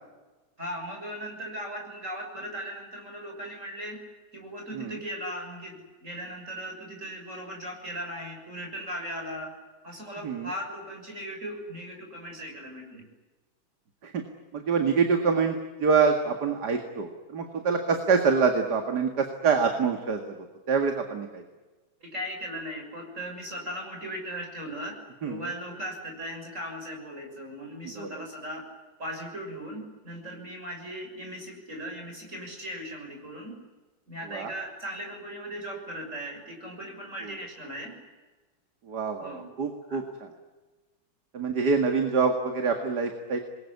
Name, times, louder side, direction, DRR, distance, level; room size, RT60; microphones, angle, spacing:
voice 1, 0.6-4.0 4.3-9.5 9.8-13.1 22.0-25.0 25.2-28.7 29.0-33.6 34.1-38.0 39.2-39.5 39.9-40.0, equal, 35° right, 3 dB, 7.2 m, -38 dB
voice 2, 14.5-15.6 15.8-20.2 20.7-21.4 25.2-25.4 28.0-28.1 34.3-34.5 38.9-40.0 41.3-43.4, right 5 dB, 55° right, 5 dB, 2.6 m, -25 dB
26.5 x 22.0 x 9.7 m, 1.2 s
omnidirectional pair, 2.1 m